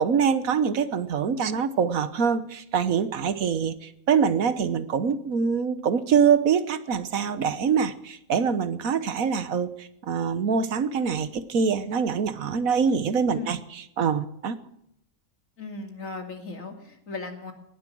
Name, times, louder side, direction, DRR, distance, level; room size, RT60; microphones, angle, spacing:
voice 1, 0.0-14.6, right 6 dB, 70° right, 13 dB, 1.5 m, -24 dB
voice 2, 15.6-17.5, left 4 dB, 65° left, 4 dB, 3.0 m, -36 dB
19.0 x 11.0 x 6.2 m, 0.77 s
omnidirectional pair, 1.5 m